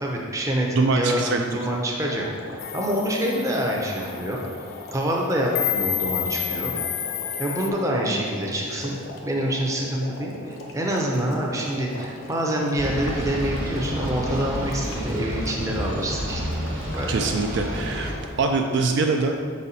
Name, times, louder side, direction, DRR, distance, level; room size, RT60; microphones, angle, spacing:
voice 1, 0.0-2.3 2.5-4.4 4.9-6.8 7.4-16.4 16.9-17.2, right 1 dB, 15° right, -1 dB, 0.6 m, -26 dB
voice 2, 0.7-1.4 17.1-18.1 18.4-19.4, right 3 dB, 55° right, 4 dB, 0.3 m, -23 dB
sound 1, 2.0-18.4, left 2 dB, 75° left, 0.8 m, -40 dB
sound 2, 2.6-7.7, left 10 dB, 45° left, 0.3 m, -30 dB
sound 3, 12.8-18.1, equal, 75° right, 1.3 m, -30 dB
5.6 x 4.2 x 4.1 m, 2.1 s
head